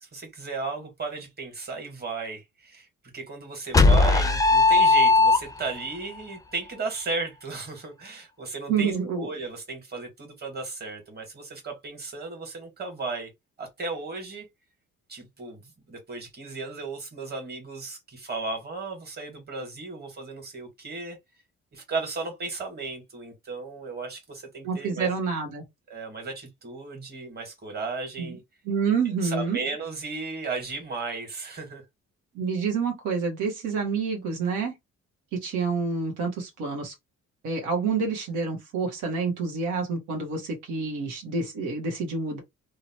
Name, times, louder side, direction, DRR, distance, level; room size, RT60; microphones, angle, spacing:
voice 1, 0.0-2.9 3.1-13.3 13.6-14.5 15.1-21.2 21.7-25.1 25.9-28.4 29.0-31.8, right 3 dB, 35° right, 1.4 m, -35 dB
sound 1, 3.7-5.8, left 3 dB, 10° left, 0.4 m, -18 dB
voice 2, 8.7-9.3 24.6-25.6 28.2-28.3 28.7-29.6 32.3-34.7 35.3-36.9 37.4-42.4, right 5 dB, 90° right, 0.9 m, -28 dB
2.8 x 2.1 x 2.8 m
cardioid pair, 90°, 30 cm